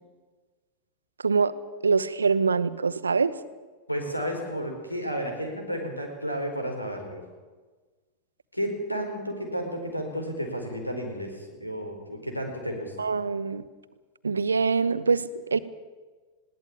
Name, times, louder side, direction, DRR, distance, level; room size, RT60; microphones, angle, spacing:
voice 1, 1.8-3.3 13.0-13.6 14.2-15.6, right 5 dB, 75° right, 14 dB, 1.0 m, -24 dB
voice 2, 3.9-7.2 8.5-13.1, equal, 85° left, 3 dB, 4.5 m, -32 dB
21.0 x 17.0 x 8.6 m, 1.3 s
figure-of-eight pair, 90°, 0 cm